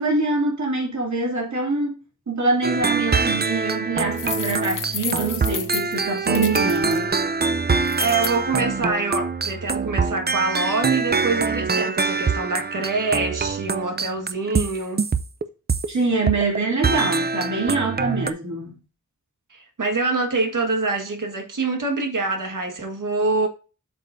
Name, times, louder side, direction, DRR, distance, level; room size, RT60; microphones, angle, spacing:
voice 1, 0.0-2.0 2.3-7.0 15.9-18.8, right 3 dB, 65° right, 2.7 m, -24 dB
sound 1, 2.6-15.9 16.3-16.6 16.8-18.3, right 4 dB, 35° right, 0.5 m, -24 dB
sound 2, 4.1-7.0 7.9-8.3, left 6 dB, 90° left, 0.8 m, -31 dB
voice 2, 6.3-6.7 8.0-15.1 19.5-23.5, right 3 dB, 90° right, 1.7 m, -25 dB
8.1 x 6.7 x 2.6 m
wide cardioid pair, 80°, 31 cm